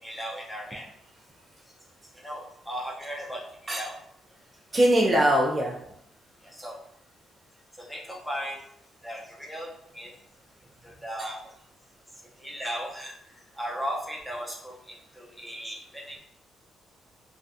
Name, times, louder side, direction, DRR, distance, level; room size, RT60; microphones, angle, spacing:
voice 1, 0.0-0.8 2.1-4.0 6.4-6.8 7.8-8.6 9.0-10.1 10.8-11.4 12.4-16.2, equal, 5° left, -3 dB, 0.7 m, -37 dB
voice 2, 4.7-5.8, right 1 dB, 30° right, -1 dB, 0.4 m, -21 dB
2.4 x 2.3 x 2.6 m, 0.73 s
cardioid pair, 90°, 0 cm